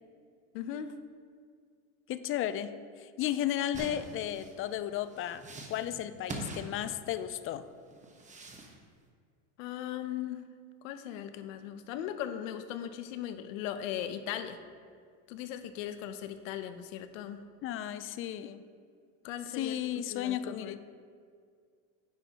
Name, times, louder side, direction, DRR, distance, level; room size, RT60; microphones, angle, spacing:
voice 1, 0.5-0.9 9.6-10.4 10.8-14.6 15.3-17.4 19.2-20.8, left 10 dB, 85° left, 10 dB, 0.7 m, -38 dB
voice 2, 2.1-5.4 5.7-7.7 17.6-18.6 19.5-20.8, left 11 dB, 35° left, 13 dB, 0.4 m, -34 dB
sound 1, 3.7-7.4 7.9-8.8, right 2 dB, 20° right, 1.0 m, -44 dB
9.6 x 8.1 x 2.9 m, 2.1 s
supercardioid pair, 115°, 38 cm